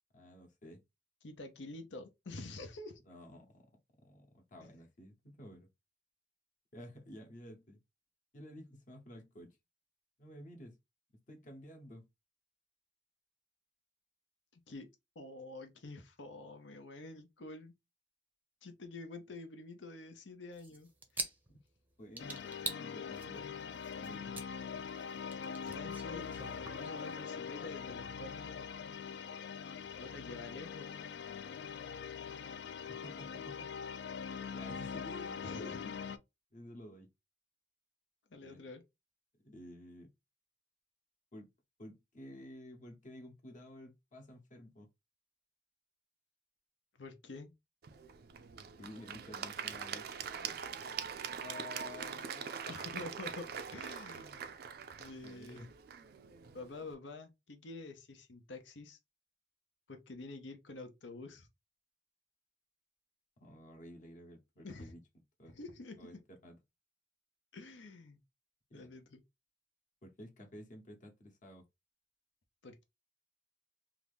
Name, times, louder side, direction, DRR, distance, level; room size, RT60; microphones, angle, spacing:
voice 1, 0.1-0.8 3.1-3.7 4.0-5.7 6.7-7.8 8.3-9.6 10.2-10.8 11.3-12.1 21.5-21.6 22.0-22.5 22.8-23.5 23.9-24.4 33.0-33.7 34.5-35.8 36.5-37.1 38.4-38.6 39.4-40.1 41.3-41.5 41.8-44.9 48.8-50.1 55.2-55.7 63.4-65.0 65.4-65.6 66.0-66.1 66.4-66.6 68.7-68.9 70.0-71.6, equal, 45° left, 0.9 m, -52 dB
voice 2, 1.2-3.0 14.5-14.9 15.1-17.7 18.6-21.2 25.6-28.7 30.0-31.0 35.4-36.0 38.3-38.8 47.0-47.5 51.3-54.4 55.0-55.7 56.5-59.0 59.9-61.5 64.6-64.9 65.5-66.2 67.5-68.2 68.7-69.2 72.6-72.8, left 3 dB, 90° left, 0.8 m, -48 dB
sound 1, 20.6-21.8 22.2-22.8 23.1-24.4 24.8-27.3, right 2 dB, 10° right, 0.6 m, -44 dB
sound 2, 22.2-36.2, left 6 dB, 65° left, 0.3 m, -43 dB
Applause / Crowd, 47.8-56.9, right 7 dB, 55° right, 0.4 m, -43 dB
2.8 x 2.5 x 3.4 m
head